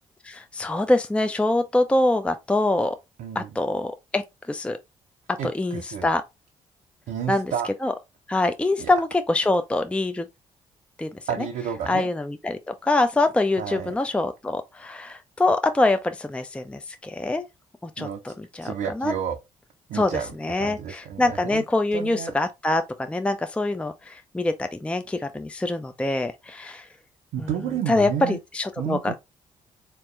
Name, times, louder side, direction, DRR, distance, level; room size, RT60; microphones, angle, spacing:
voice 1, 0.2-3.0 3.4-4.2 4.5-4.8 5.3-6.2 7.3-7.5 7.8-7.9 8.3-10.3 11.0-11.1 11.9-17.4 17.8-19.1 19.9-26.9 27.4-27.5 27.9-29.2, left 2 dB, 5° left, 0.5 m, -24 dB
voice 2, 3.2-3.6 5.4-6.1 7.1-7.7 8.8-8.9 11.3-12.1 13.6-14.0 18.0-19.4 19.9-21.6 21.9-22.3 27.3-28.4 28.8-29.2, right 8 dB, 60° right, 0.6 m, -31 dB
4.1 x 3.0 x 3.2 m
hypercardioid pair, 40°, 16 cm